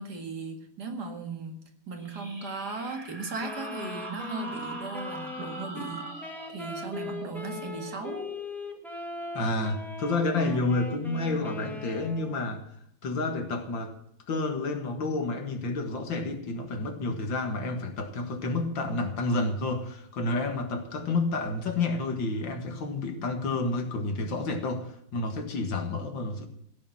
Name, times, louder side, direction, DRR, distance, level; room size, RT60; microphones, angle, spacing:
voice 1, 0.0-1.5 1.9-6.1 6.5-8.3, right 3 dB, 55° right, 5 dB, 2.5 m, -37 dB
sound 1, 2.0-9.2, right 2 dB, 20° right, 2.2 m, -43 dB
Wind instrument woodwind instrument, 3.4-12.5, left 2 dB, ahead, 1.6 m, -40 dB
voice 2, 9.3-12.7 13.0-13.9 14.3-26.5, left 2 dB, 75° left, 6 dB, 2.5 m, -30 dB
16.0 x 6.8 x 9.0 m, 0.69 s
omnidirectional pair, 2.1 m